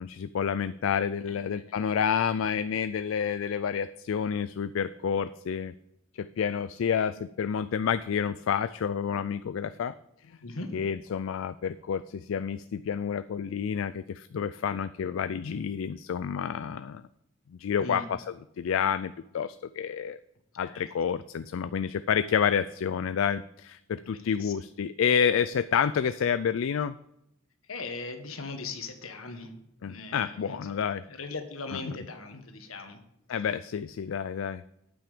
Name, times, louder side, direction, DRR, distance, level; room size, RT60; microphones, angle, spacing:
voice 1, 0.0-5.7 6.2-9.9 10.7-17.0 17.6-18.2 18.6-20.2 20.6-27.0 29.8-31.0 31.7-31.8 33.3-34.6, left 7 dB, 70° left, 13 dB, 0.4 m, -29 dB
voice 2, 24.1-24.5 27.7-29.5 29.8-30.8 31.1-33.0, left 3 dB, 85° left, 6 dB, 1.6 m, -39 dB
9.1 x 8.7 x 5.1 m, 0.82 s
head